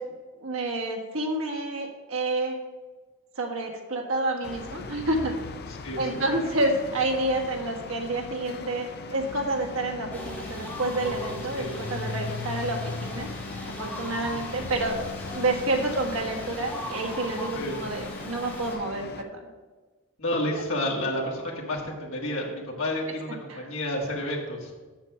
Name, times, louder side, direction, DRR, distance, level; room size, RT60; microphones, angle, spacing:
voice 1, 0.4-2.6 3.4-5.3 6.0-13.3 13.8-15.0 15.3-19.4 23.5-23.7, right 2 dB, 70° right, 2 dB, 1.6 m, -29 dB
sound 1, 4.4-19.2, left 4 dB, 45° left, 0.5 m, -39 dB
voice 2, 5.7-6.4 11.5-11.7 14.2-14.4 17.5-17.8 20.2-24.7, left 1 dB, 65° left, -2 dB, 1.7 m, -31 dB
sound 2, 10.1-18.7, left 1 dB, 10° left, 2.2 m, -39 dB
7.0 x 6.8 x 5.8 m, 1.3 s
head